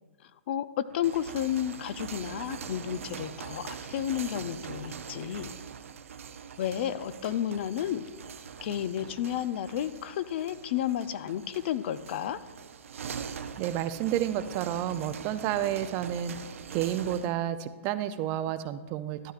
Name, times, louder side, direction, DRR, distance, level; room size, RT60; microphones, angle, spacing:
voice 1, 0.9-5.5 6.6-8.1 8.6-12.4, left 10 dB, 55° left, 15 dB, 0.4 m, -32 dB
sound 1, 0.9-17.3, right 7 dB, 80° right, 0.6 m, -43 dB
voice 2, 13.6-16.3 16.7-19.3, right 11 dB, 35° right, 12 dB, 0.4 m, -30 dB
12.5 x 11.0 x 2.4 m, 1.3 s
hypercardioid pair, 135°, 7 cm